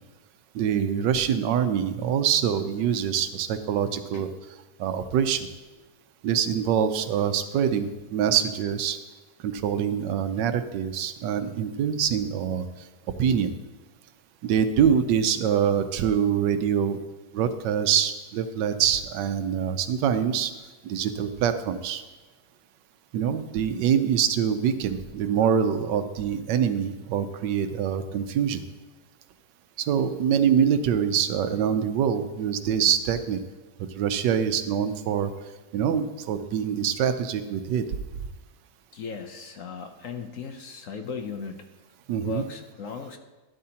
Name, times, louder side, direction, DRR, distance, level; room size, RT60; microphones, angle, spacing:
voice 1, 0.5-4.3 4.8-5.5 6.2-9.0 9.4-12.7 13.2-13.5 14.4-17.0 17.3-20.5 20.8-22.0 23.1-28.6 29.9-33.4 34.0-35.3 35.7-37.8 42.1-42.4, right 8 dB, 85° right, 10 dB, 1.4 m, -24 dB
voice 2, 38.9-41.7 42.2-43.2, left 5 dB, 60° left, 6 dB, 0.9 m, -37 dB
12.5 x 12.0 x 2.9 m, 1.2 s
omnidirectional pair, 1.9 m